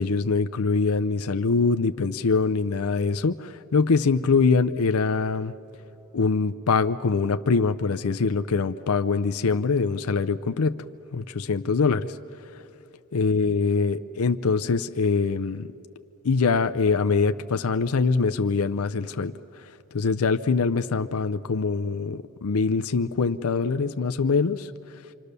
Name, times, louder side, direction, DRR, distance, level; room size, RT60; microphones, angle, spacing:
voice 1, 0.0-5.5 6.1-10.8 11.1-12.6 13.1-15.7 16.2-24.7, left 4 dB, 90° left, 9 dB, 0.6 m, -24 dB
26.5 x 26.0 x 6.8 m, 2.9 s
head